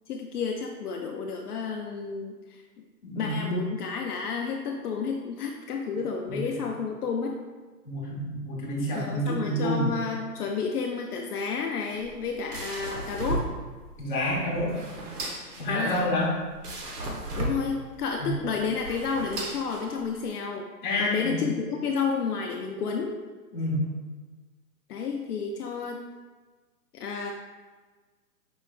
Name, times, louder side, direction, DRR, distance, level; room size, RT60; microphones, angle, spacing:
voice 1, 0.1-2.6 3.2-7.4 8.9-13.5 15.7-16.1 17.4-20.7 21.0-23.2 24.9-26.0 26.9-27.3, left 5 dB, 65° left, 2 dB, 0.5 m, -31 dB
voice 2, 3.0-3.6 6.3-6.4 7.8-10.0 14.0-14.7 15.6-16.3 18.2-18.3 20.8-21.4 23.5-23.8, left 1 dB, 30° left, -5 dB, 1.0 m, -28 dB
sound 1, 11.9-20.3, right 2 dB, 65° right, 1.1 m, -36 dB
5.3 x 3.2 x 2.3 m, 1.4 s
hypercardioid pair, 160°, 49 cm